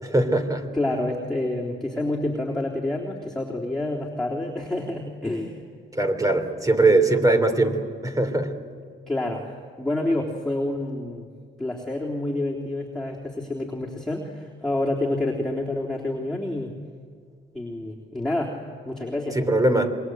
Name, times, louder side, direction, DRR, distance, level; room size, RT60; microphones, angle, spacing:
voice 1, 0.0-0.7 5.9-8.6 19.4-20.0, right 2 dB, 15° right, 6 dB, 3.3 m, -21 dB
voice 2, 0.7-5.6 9.1-9.5 9.8-11.3 11.6-16.7 17.5-18.6 18.9-19.4, left 1 dB, 5° left, -3 dB, 3.5 m, -28 dB
27.0 x 23.0 x 8.0 m, 2.1 s
cardioid pair, 90°, 20 cm